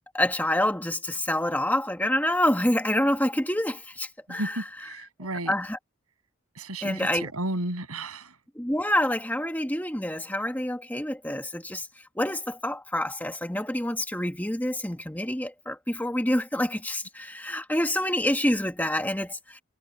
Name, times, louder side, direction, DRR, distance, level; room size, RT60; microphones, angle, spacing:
voice 1, 0.1-5.0 5.5-5.8 6.8-7.3 8.6-11.9 12.2-19.6, left 1 dB, 10° left, 2.0 m, -27 dB
voice 2, 4.3-5.5 6.6-8.3, right 1 dB, 85° right, 7.8 m, -33 dB
head